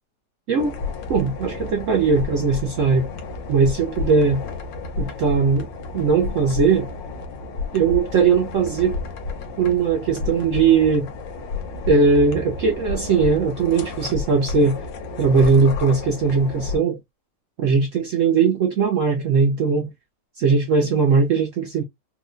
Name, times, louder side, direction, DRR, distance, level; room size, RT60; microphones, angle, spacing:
sound 1, 0.6-16.8, left 4 dB, 85° left, 1.5 m, -31 dB
voice 1, 1.1-3.1 3.5-4.4 5.0-5.7 5.9-6.9 7.7-9.0 9.6-11.1 11.9-14.8 15.2-17.0 17.6-19.9 20.4-21.8, right 5 dB, 70° right, 0.8 m, -19 dB
4.5 x 2.1 x 2.5 m
omnidirectional pair, 1.9 m